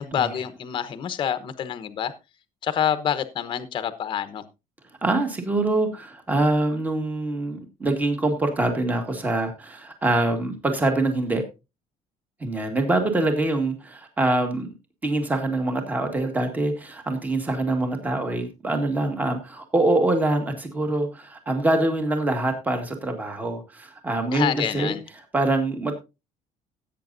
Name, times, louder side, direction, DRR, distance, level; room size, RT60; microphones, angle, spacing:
voice 1, 0.0-2.1 2.6-4.4 24.3-25.0, left 9 dB, 35° left, 1.0 m, -27 dB
voice 2, 5.0-11.4 12.4-14.7 15.0-25.0 25.3-25.9, right 2 dB, 10° right, 1.8 m, -24 dB
16.5 x 8.5 x 2.6 m
cardioid pair, 180°, 14 cm